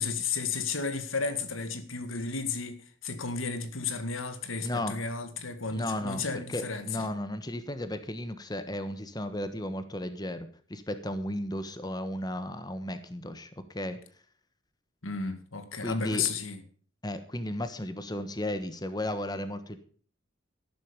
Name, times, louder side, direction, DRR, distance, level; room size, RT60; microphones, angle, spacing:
voice 1, 0.0-7.1 15.0-16.6, left 5 dB, 85° left, 2.0 m, -33 dB
voice 2, 4.6-5.0 5.8-14.0 15.8-16.3 17.0-19.8, left 1 dB, 20° left, 1.3 m, -34 dB
13.0 x 12.0 x 5.2 m
head